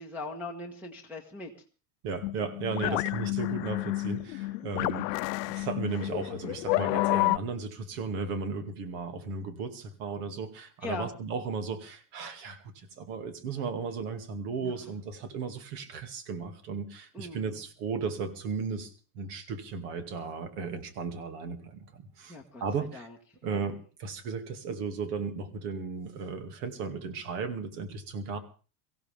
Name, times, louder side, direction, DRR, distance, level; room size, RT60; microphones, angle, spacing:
voice 1, 0.0-1.5 2.8-3.0 10.8-11.1 14.6-14.7 17.1-17.6 22.3-23.2 23.4-23.7, left 3 dB, 5° right, -5 dB, 1.4 m, -40 dB
voice 2, 2.0-5.2 5.5-23.1 23.4-28.4, right 5 dB, 65° right, 8 dB, 2.5 m, -35 dB
sound 1, 2.2-7.4, left 21 dB, 85° left, 0.7 m, -30 dB
23.5 x 15.5 x 3.5 m, 0.36 s
cardioid pair, 165°, 49 cm